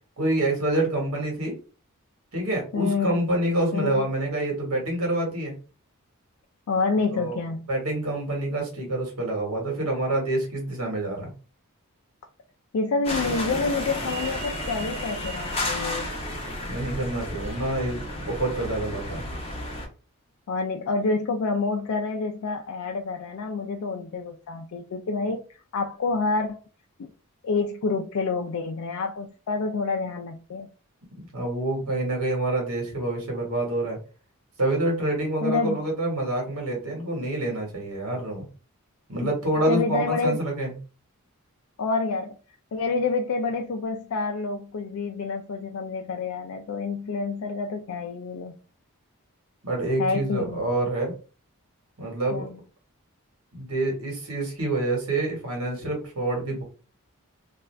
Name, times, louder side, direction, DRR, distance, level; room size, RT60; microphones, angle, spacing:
voice 1, 0.2-1.6 2.3-5.6 7.1-7.4 7.7-11.3 16.7-19.2 31.2-34.0 34.6-38.4 39.1-40.7 49.6-51.1 52.0-52.4 53.5-56.6, right 2 dB, 75° right, 1.4 m, -27 dB
voice 2, 2.7-3.2 3.7-4.0 6.7-7.7 12.7-16.1 20.5-25.4 25.7-26.6 27.0-27.1 27.4-30.7 35.4-35.8 39.2-39.3 39.7-40.4 41.8-42.4 42.7-48.6 50.0-50.6 52.3-52.6, left 4 dB, 65° left, 0.4 m, -28 dB
sound 1, 13.0-19.9, left 1 dB, 25° left, 0.8 m, -32 dB
2.5 x 2.4 x 3.2 m
head